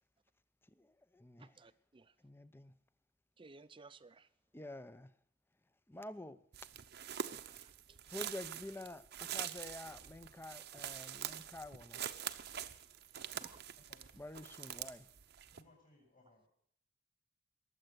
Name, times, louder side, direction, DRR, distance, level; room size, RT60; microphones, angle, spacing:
voice 1, 0.6-1.6 2.2-2.7 4.5-5.1 5.9-6.4 8.1-12.0 14.2-15.1, left 1 dB, 10° left, 0.6 m, -49 dB
voice 2, 1.4-2.0 3.4-4.2 7.3-7.6 13.3-13.6, right 3 dB, 25° right, 0.6 m, -57 dB
sound 1, 6.5-15.6, right 9 dB, 60° right, 0.8 m, -45 dB
voice 3, 15.5-16.5, left 2 dB, 45° left, 7.7 m, -65 dB
21.0 x 7.9 x 8.1 m
head